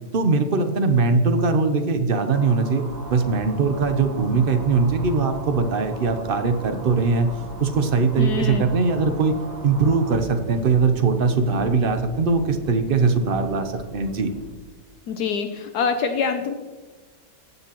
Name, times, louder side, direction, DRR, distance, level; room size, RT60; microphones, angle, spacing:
voice 1, 0.1-2.8 3.1-7.3 7.6-9.3 9.6-14.3, right 4 dB, 55° right, 7 dB, 0.6 m, -21 dB
sound 1, 2.3-10.2, right 2 dB, 25° right, 1.2 m, -41 dB
sound 2, 2.8-14.5, right 2 dB, 80° right, 2.0 m, -39 dB
voice 2, 8.2-8.7 15.1-16.5, left 5 dB, 70° left, 7 dB, 1.1 m, -25 dB
16.5 x 6.9 x 3.0 m, 1.4 s
omnidirectional pair, 1.9 m